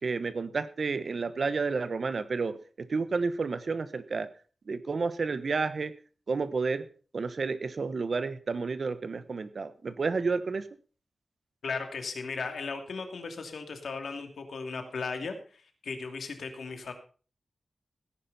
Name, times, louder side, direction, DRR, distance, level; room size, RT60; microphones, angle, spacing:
voice 1, 0.0-4.3 4.7-5.9 6.3-6.9 7.1-10.7, right 4 dB, 50° right, 13 dB, 1.0 m, -31 dB
voice 2, 11.6-16.9, left 4 dB, 90° left, 5 dB, 2.6 m, -36 dB
17.0 x 10.5 x 4.1 m, 0.38 s
wide cardioid pair, 175°, 0 cm